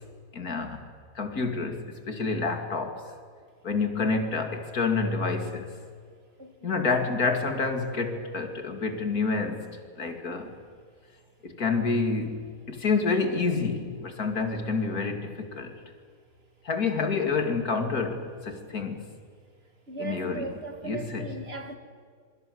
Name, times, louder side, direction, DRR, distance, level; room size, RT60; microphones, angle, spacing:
voice 1, 0.3-0.8 1.1-3.1 3.6-5.7 6.6-10.5 11.4-15.7 16.6-19.1 20.0-20.6 20.8-21.3, left 4 dB, 80° left, 3.0 m, -28 dB
voice 2, 6.4-6.8 19.9-21.7, right 3 dB, 40° right, 2.4 m, -38 dB
27.0 x 23.0 x 7.9 m
omnidirectional pair, 1.6 m